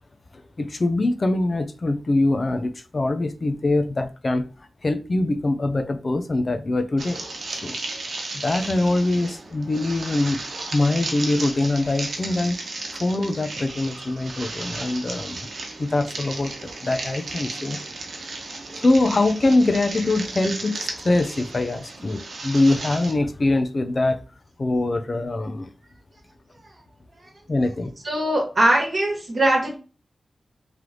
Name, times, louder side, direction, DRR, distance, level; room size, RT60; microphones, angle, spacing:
voice 1, 0.3-4.5 4.8-7.2 7.6-7.8 8.4-12.6 12.9-15.5 15.8-17.8 18.8-24.2 24.6-25.7 27.5-27.9, left 2 dB, 40° left, 0.5 m, -23 dB
sound 1, 7.0-23.1, right 3 dB, 80° right, 0.9 m, -34 dB
voice 2, 28.0-29.7, right 1 dB, 50° right, 1.2 m, -21 dB
3.3 x 3.0 x 3.8 m
wide cardioid pair, 115°, 0 cm